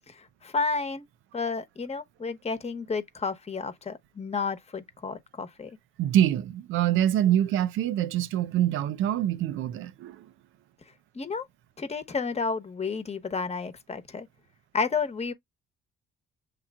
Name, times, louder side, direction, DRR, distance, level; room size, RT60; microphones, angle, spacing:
voice 1, 0.1-1.1 1.3-5.8 11.1-11.4 11.8-14.3 14.7-15.3, left 4 dB, 30° left, 1.0 m, -31 dB
voice 2, 6.0-10.3, right 11 dB, 85° right, 0.5 m, -25 dB
7.2 x 3.0 x 2.3 m
cardioid pair, 90°, 20 cm